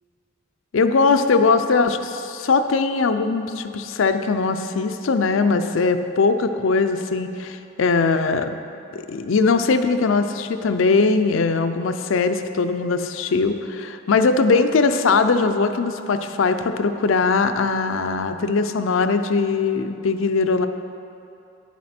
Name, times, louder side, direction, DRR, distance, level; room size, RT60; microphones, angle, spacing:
voice 1, 0.7-8.5 8.9-20.7, left 4 dB, 70° left, 9 dB, 0.5 m, -20 dB
9.6 x 7.3 x 4.3 m, 2.8 s
head